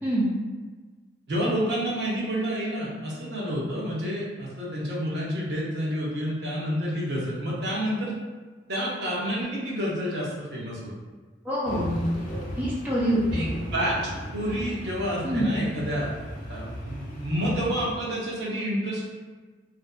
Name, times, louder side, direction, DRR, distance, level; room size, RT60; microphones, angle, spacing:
voice 1, 0.0-0.3 11.4-12.0 12.6-13.4 15.2-15.5, equal, 10° right, -7 dB, 0.5 m, -25 dB
voice 2, 1.3-8.1 8.7-10.9 13.3-13.5 13.7-13.9 14.3-16.1 16.5-19.0, equal, 65° right, -5 dB, 0.7 m, -29 dB
sound 1, 11.6-18.0, equal, 45° left, 0.5 m, -36 dB
2.6 x 2.5 x 2.2 m, 1.4 s
head